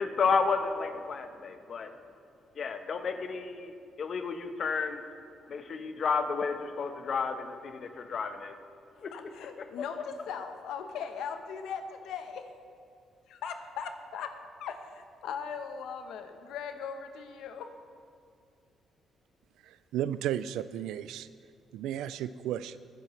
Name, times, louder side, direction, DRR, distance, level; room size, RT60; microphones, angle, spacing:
voice 1, 0.0-1.9 2.6-3.7 4.0-5.0 5.5-8.6 9.0-9.1 9.6-9.7, left 5 dB, 55° left, 7 dB, 1.0 m, -31 dB
voice 2, 9.1-12.5 13.3-14.3 14.6-17.7, left 6 dB, 85° left, 7 dB, 0.9 m, -39 dB
voice 3, 19.6-21.3 21.7-22.8, right 11 dB, 90° right, 15 dB, 0.3 m, -34 dB
22.0 x 7.5 x 3.2 m, 2.3 s
cardioid pair, 90°, 0 cm